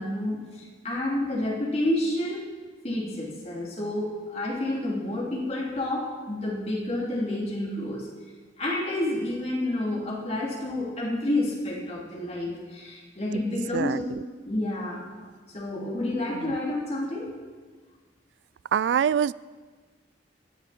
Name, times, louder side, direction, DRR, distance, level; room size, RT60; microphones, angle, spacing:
voice 1, 0.0-2.4 2.8-8.1 8.6-14.0 14.4-15.1 15.5-17.4, left 1 dB, 35° left, -2 dB, 3.2 m, -29 dB
voice 2, 13.7-14.2 16.3-16.6 18.7-19.3, right 8 dB, 90° right, 19 dB, 0.3 m, -25 dB
17.0 x 12.5 x 4.4 m, 1.4 s
head